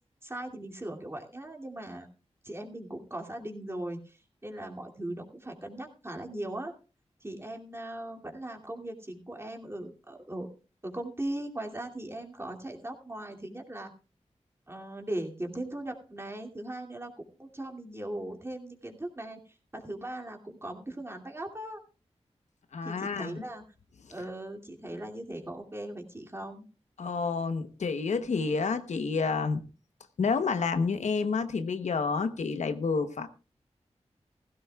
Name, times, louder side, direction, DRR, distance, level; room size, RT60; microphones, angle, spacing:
voice 1, 0.2-2.1 2.4-4.2 4.4-6.7 7.2-10.5 10.8-13.9 14.7-19.4 19.7-21.8 22.8-23.6 24.1-26.7, right 1 dB, 20° right, 2.6 m, -39 dB
voice 2, 22.7-23.4 27.0-29.6 30.2-33.3, left 4 dB, 90° left, 1.0 m, -29 dB
17.0 x 15.5 x 2.4 m
wide cardioid pair, 75°, 12 cm